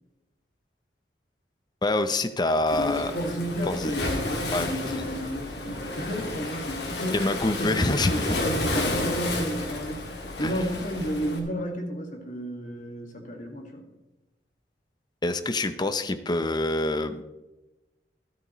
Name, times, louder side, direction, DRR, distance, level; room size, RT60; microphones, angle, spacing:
voice 1, 1.8-3.1 3.6-3.9 4.5-5.1 7.1-8.4 10.4-10.6 15.2-17.2, left 2 dB, 25° left, 10 dB, 0.6 m, -26 dB
Waves surf, 2.7-11.4, left 2 dB, 70° left, 2.0 m, -31 dB
voice 2, 2.7-5.5 6.0-13.8, equal, 45° left, 2 dB, 2.0 m, -32 dB
13.0 x 12.5 x 3.1 m, 1.0 s
head